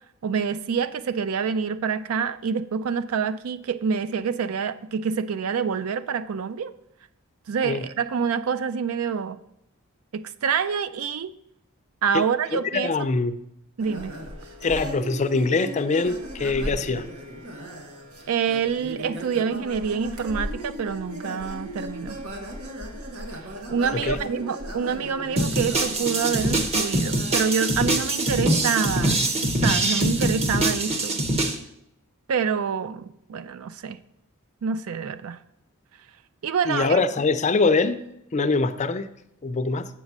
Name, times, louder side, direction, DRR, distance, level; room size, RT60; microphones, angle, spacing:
voice 1, 0.2-6.7 7.5-9.4 10.1-11.3 12.0-13.1 13.8-14.2 18.3-22.2 23.7-29.2 29.6-31.2 32.3-34.0 34.6-35.4 36.4-37.0, right 6 dB, 70° right, 13 dB, 0.4 m, -27 dB
voice 2, 12.5-13.4 14.6-17.0 23.9-24.2 36.7-38.0 38.3-39.1 39.4-39.9, left 3 dB, 35° left, 11 dB, 0.4 m, -23 dB
sound 1, 13.8-27.4, equal, 85° right, 1.3 m, -37 dB
sound 2, 25.4-31.5, right 1 dB, 30° right, 0.8 m, -24 dB
7.3 x 5.3 x 6.0 m, 0.79 s
head